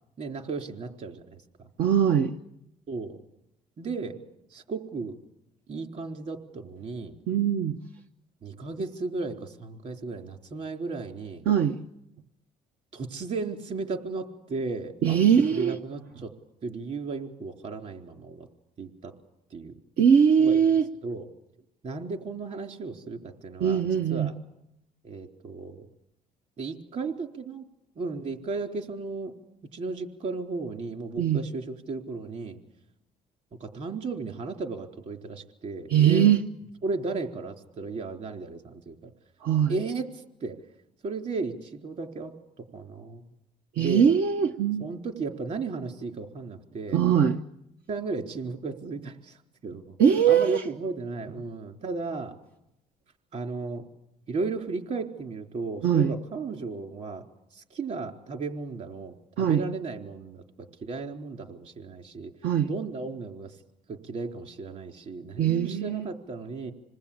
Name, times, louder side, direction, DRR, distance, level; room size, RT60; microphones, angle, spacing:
voice 1, 0.2-1.7 2.9-3.2 3.8-4.2 4.5-5.2 5.7-7.2 8.4-11.5 12.9-15.2 15.5-16.3 16.6-18.5 18.8-19.1 19.5-19.7 20.4-20.6 21.0-21.3 21.8-23.8 24.1-24.4 25.0-25.9 26.6-27.6 28.0-29.4 29.7-32.6 33.6-36.2 36.8-39.1 39.7-40.1 40.4-40.6 41.0-43.2 43.8-44.1 44.8-47.0 47.9-50.0 50.2-52.4 53.3-53.9 54.3-57.2 57.5-62.3 62.7-63.5 63.9-66.7, right 4 dB, 50° right, 3 dB, 4.0 m, -35 dB
voice 2, 1.8-2.3 7.3-7.8 11.5-11.8 15.0-15.7 20.0-20.8 23.6-24.3 31.2-31.4 35.9-36.4 39.4-39.8 43.8-44.8 46.9-47.4 50.0-50.6 55.8-56.1 59.4-59.6 62.4-62.7 65.4-66.1, right 8 dB, 80° right, 5 dB, 1.0 m, -21 dB
27.5 x 20.0 x 8.7 m, 0.83 s
cardioid pair, 110°, 16 cm